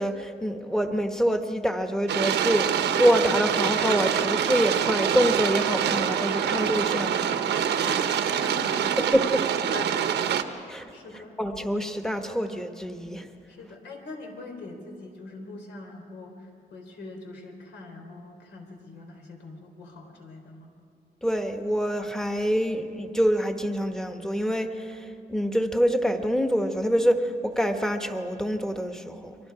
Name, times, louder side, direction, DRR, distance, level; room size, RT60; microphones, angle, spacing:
voice 1, 0.0-7.2 9.0-9.4 10.7-10.8 11.4-13.3 21.2-29.4, equal, 5° left, 6 dB, 1.1 m, -26 dB
sound 1, 2.1-10.4, right 9 dB, 90° right, 1.2 m, -25 dB
voice 2, 7.8-8.9 9.7-10.3 10.6-11.4 13.5-20.7, left 3 dB, 85° left, 2 dB, 4.2 m, -42 dB
30.0 x 23.5 x 4.9 m, 2.5 s
wide cardioid pair, 170°, 17 cm